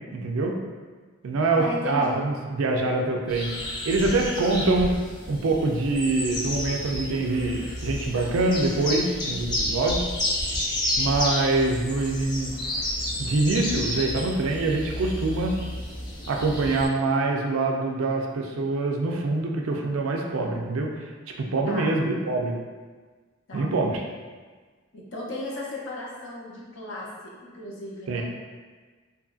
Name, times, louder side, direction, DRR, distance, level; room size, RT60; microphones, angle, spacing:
voice 1, 0.1-0.6 1.2-3.5 3.8-4.9 5.3-10.0 11.0-12.5 13.2-15.6 16.3-21.1 21.4-22.5 23.5-24.0 28.1-28.2, right 2 dB, 80° right, 1 dB, 0.4 m, -25 dB
voice 2, 1.5-2.2 21.6-21.9 23.5-23.8 24.9-28.2, left 1 dB, 65° left, -4 dB, 0.6 m, -35 dB
sound 1, 3.3-16.9, left 1 dB, 20° left, 0.4 m, -31 dB
2.8 x 2.5 x 2.3 m, 1.4 s
head